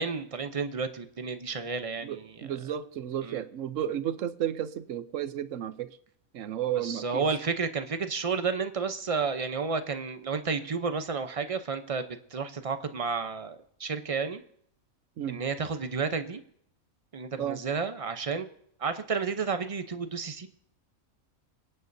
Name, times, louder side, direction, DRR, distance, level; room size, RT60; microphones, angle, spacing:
voice 1, 0.0-2.5 3.2-3.4 6.8-14.4 15.3-16.4 17.1-18.5 18.8-20.5, right 5 dB, 35° right, 9 dB, 0.6 m, -31 dB
voice 2, 2.0-6.0 6.3-7.3 15.2-15.4 17.4-17.6, right 10 dB, 65° right, 13 dB, 1.0 m, -33 dB
25.5 x 8.9 x 2.7 m, 0.67 s
omnidirectional pair, 1.5 m